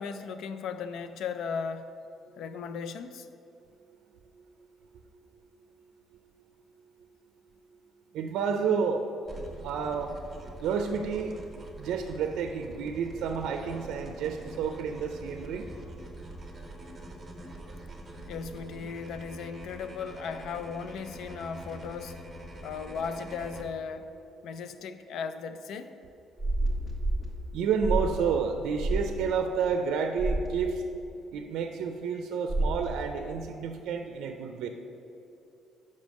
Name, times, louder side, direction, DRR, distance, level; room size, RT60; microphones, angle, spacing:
voice 1, 0.0-1.9 2.4-3.3 18.3-22.2 22.6-24.1 24.4-26.0, left 6 dB, 70° left, 10 dB, 0.4 m, -36 dB
voice 2, 8.1-9.1 9.6-10.2 10.6-11.4 11.8-15.7 27.5-30.8 31.3-34.7, right 6 dB, 85° right, 6 dB, 0.4 m, -30 dB
sound 1, 9.2-23.6, right 1 dB, 20° right, 1.0 m, -45 dB
sound 2, 26.4-27.3 27.8-28.2 28.8-29.1 30.2-30.5 32.5-32.9, right 2 dB, 15° left, 1.0 m, -28 dB
5.2 x 5.2 x 6.4 m, 2.7 s
cardioid pair, 135°, 0 cm